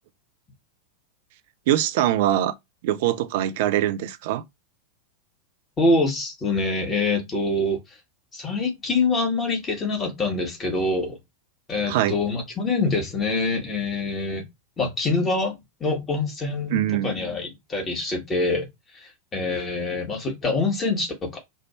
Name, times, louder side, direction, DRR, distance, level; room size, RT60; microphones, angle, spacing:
voice 1, 1.7-2.5 2.8-4.4 11.9-12.1 16.7-17.1, right 12 dB, 50° right, 0.5 m, -22 dB
voice 2, 5.8-7.8 8.3-11.2 11.7-14.4 14.8-18.7 18.9-21.4, left 3 dB, 20° left, 1.5 m, -25 dB
3.4 x 2.5 x 4.3 m
figure-of-eight pair, 90°, 0 cm